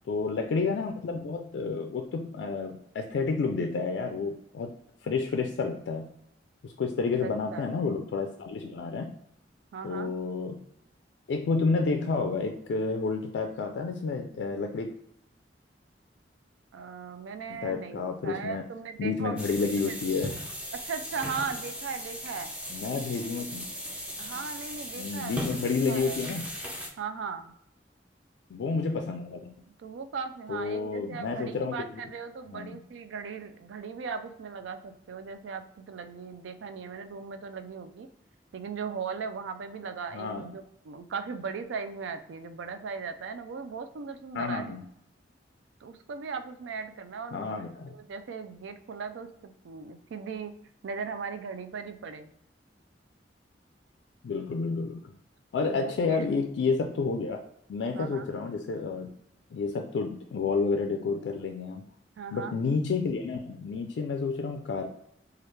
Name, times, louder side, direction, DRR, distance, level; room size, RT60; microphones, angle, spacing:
voice 1, 0.1-4.7 5.0-6.1 6.6-9.1 9.8-10.6 11.3-14.9 17.5-18.6 19.0-20.3 22.7-23.7 25.0-26.5 28.5-29.5 30.5-32.0 32.5-32.8 40.1-40.4 44.3-44.8 47.3-47.9 54.2-55.1 55.5-57.4 57.7-59.1 59.5-61.8 62.3-64.9, left 4 dB, 70° left, 4 dB, 0.3 m, -30 dB
voice 2, 7.2-7.7 9.7-10.1 16.7-19.4 19.9-20.0 20.8-22.6 24.2-25.6 25.9-26.2 27.0-27.5 29.8-38.1 38.5-44.8 45.8-47.6 47.9-50.5 50.8-52.3 55.7-56.2 57.9-58.3 62.2-62.6, right 5 dB, 90° right, 9 dB, 0.4 m, -38 dB
sound 1, 19.4-26.9, equal, 5° right, 0.5 m, -38 dB
3.2 x 2.4 x 3.1 m, 0.75 s
head